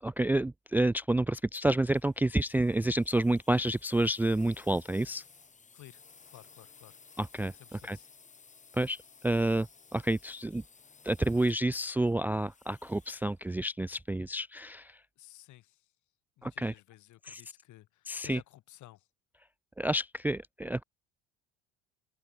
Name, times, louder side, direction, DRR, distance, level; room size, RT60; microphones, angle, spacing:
voice 1, 0.0-5.2 7.2-7.5 7.8-8.0 8.7-9.0 9.2-10.6 11.0-15.0 16.4-16.7 17.3-17.4 18.1-18.4 19.8-20.8, right 1 dB, 5° right, 0.5 m, -29 dB
sound 1, 1.8-13.4, left 5 dB, 20° left, 3.9 m, -58 dB
voice 2, 6.3-7.0 7.5-8.1 15.2-15.9 16.4-19.1, left 15 dB, 60° left, 4.7 m, -55 dB
open air
cardioid pair, 125°, 33 cm